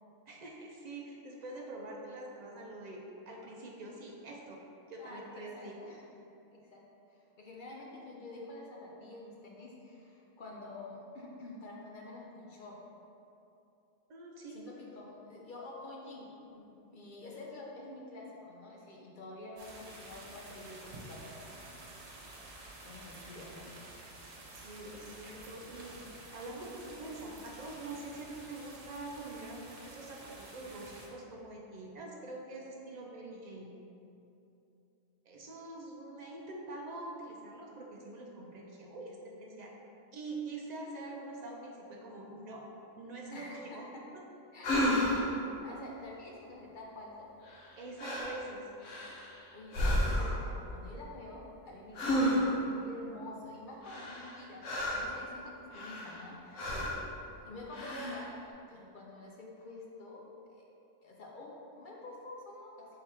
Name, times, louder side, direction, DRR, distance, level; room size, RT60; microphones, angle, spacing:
voice 1, 0.3-4.6 4.9-5.8 14.1-14.6 24.3-33.7 35.2-39.7 40.1-42.6 43.0-43.9 44.1-44.2 47.8-48.7 56.7-57.0, right 2 dB, 70° right, -1 dB, 0.4 m, -45 dB
voice 2, 5.0-6.1 6.5-6.8 7.1-12.8 14.5-21.6 22.4-23.7 43.3-43.8 44.5-44.7 45.0-47.3 49.5-57.0 57.4-60.2 60.5-60.6 61.0-63.0, left 2 dB, 55° left, -3 dB, 0.6 m, -48 dB
sound 1, 19.6-31.1, right 2 dB, 90° right, 1.1 m, -50 dB
sound 2, 44.6-45.4 47.5-47.7 48.0-48.4 48.8-49.4 49.7-50.5 52.0-52.7 53.8-55.2 55.7-56.3 56.6-57.1 57.7-58.3, equal, 80° left, 1.1 m, -32 dB
3.7 x 3.4 x 4.2 m, 2.8 s
omnidirectional pair, 1.3 m